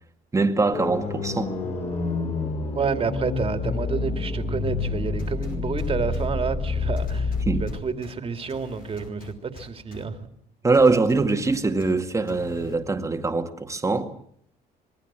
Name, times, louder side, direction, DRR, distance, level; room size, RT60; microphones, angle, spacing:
voice 1, 0.3-1.5 7.5-7.6 10.6-14.1, right 3 dB, 20° right, 2.1 m, -22 dB
sound 1, 0.7-7.7, left 4 dB, 40° left, 7.2 m, -28 dB
voice 2, 2.7-7.3 7.6-10.2, right 5 dB, 35° right, 2.6 m, -29 dB
sound 2, 5.2-6.3 7.0-8.1 8.5-10.0 10.7-11.9 12.3-12.7, left 4 dB, 60° left, 5.3 m, -43 dB
26.0 x 21.0 x 7.6 m
cardioid pair, 110°, 17 cm